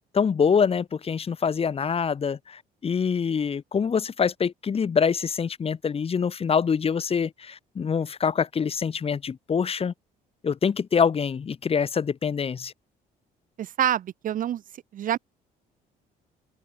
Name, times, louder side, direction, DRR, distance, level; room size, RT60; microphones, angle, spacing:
voice 1, 0.1-9.9 10.4-12.7, left 6 dB, 35° left, 3.2 m, -25 dB
voice 2, 13.6-14.6 14.9-15.2, right 11 dB, 55° right, 1.1 m, -26 dB
open air
cardioid pair, 110°, 17 cm